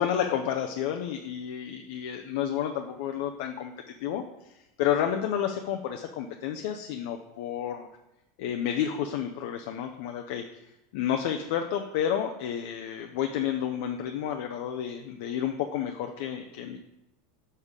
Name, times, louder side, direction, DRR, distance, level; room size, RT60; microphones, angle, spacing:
voice 1, 0.0-3.7 4.0-4.2 4.8-7.9 8.4-10.4 10.9-16.8, left 9 dB, 60° left, 5 dB, 0.5 m, -30 dB
6.6 x 6.3 x 3.6 m, 0.93 s
supercardioid pair, 165°, 0 cm